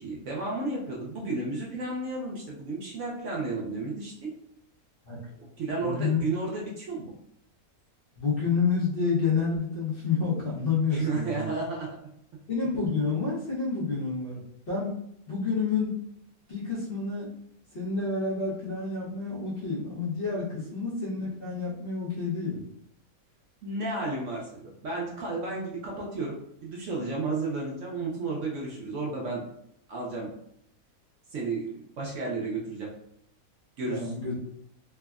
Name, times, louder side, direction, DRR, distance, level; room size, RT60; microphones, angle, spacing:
voice 1, 0.0-4.3 5.6-7.1 10.9-12.0 20.5-20.7 23.6-29.5 29.9-30.3 31.3-32.9 33.8-34.1, right 3 dB, 65° right, -4 dB, 0.9 m, -32 dB
voice 2, 5.8-6.2 8.2-11.5 12.5-14.4 14.7-15.0 15.3-15.9 16.5-17.3 17.7-22.6 33.9-34.4, left 4 dB, 45° left, -7 dB, 0.9 m, -29 dB
3.4 x 2.0 x 2.3 m, 0.73 s
omnidirectional pair, 1.6 m